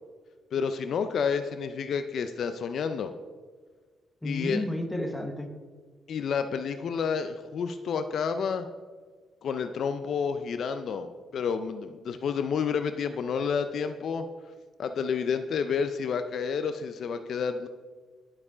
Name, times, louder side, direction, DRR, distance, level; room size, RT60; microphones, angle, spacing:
voice 1, 0.5-3.1 4.2-4.6 6.1-8.7 9.4-11.1 11.3-14.2 14.8-17.7, left 6 dB, 50° left, 9 dB, 0.4 m, -30 dB
voice 2, 4.2-5.5, left 1 dB, 5° left, 4 dB, 0.9 m, -31 dB
11.0 x 4.7 x 4.9 m, 1.5 s
cardioid pair, 160°, 0 cm